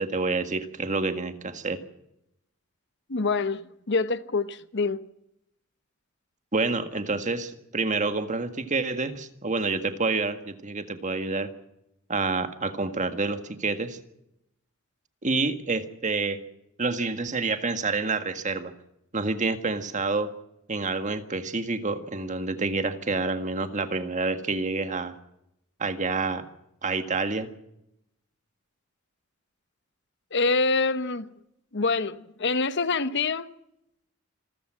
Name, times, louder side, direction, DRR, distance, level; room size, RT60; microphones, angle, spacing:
voice 1, 0.0-1.8 6.5-11.5 12.1-14.0 15.2-16.4 16.8-18.7 19.1-20.3 20.7-25.1 25.8-26.5 26.8-27.5, right 3 dB, 35° right, 1.8 m, -28 dB
voice 2, 3.1-5.0 30.3-31.3 31.7-33.5, left 3 dB, 60° left, 1.0 m, -26 dB
27.0 x 14.0 x 7.4 m
head